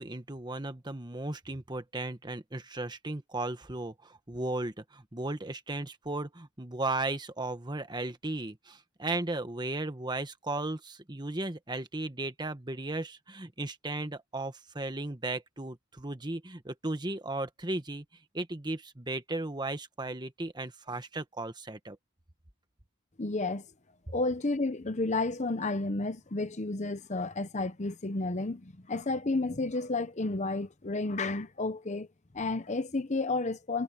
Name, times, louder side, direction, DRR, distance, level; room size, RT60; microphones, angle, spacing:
voice 1, 0.0-18.0 18.3-22.0, right 2 dB, 20° right, 1.3 m, -36 dB
voice 2, 23.2-23.6 24.1-32.1 32.3-33.8, left 2 dB, 35° left, 0.9 m, -31 dB
head